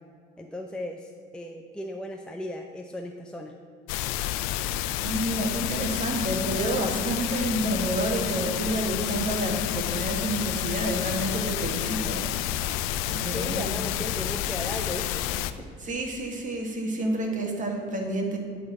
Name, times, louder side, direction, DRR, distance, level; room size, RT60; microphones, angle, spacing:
voice 1, 0.4-3.5 13.3-15.4, left 1 dB, 5° left, 2 dB, 0.5 m, -36 dB
sound 1, 3.9-15.5, left 12 dB, 75° left, 0.5 m, -30 dB
voice 2, 5.0-12.7 13.1-13.8 15.8-18.4, right 1 dB, 35° right, 2 dB, 1.6 m, -29 dB
11.0 x 4.0 x 5.3 m, 2.3 s
supercardioid pair, 85°, 21 cm